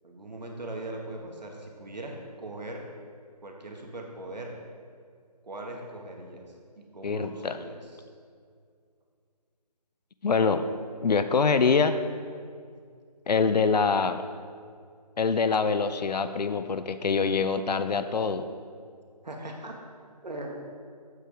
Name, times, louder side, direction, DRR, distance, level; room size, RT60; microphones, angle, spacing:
voice 1, 0.0-2.8 3.4-4.5 5.4-6.4 6.7-8.1 19.2-19.7 20.2-20.6, right 2 dB, 85° right, 1 dB, 1.5 m, -40 dB
voice 2, 7.0-7.6 10.2-10.7 11.0-12.0 13.3-14.2 15.2-18.5, left 5 dB, 75° left, 10 dB, 0.5 m, -24 dB
8.1 x 4.8 x 5.0 m, 2.2 s
figure-of-eight pair, 180°, 21 cm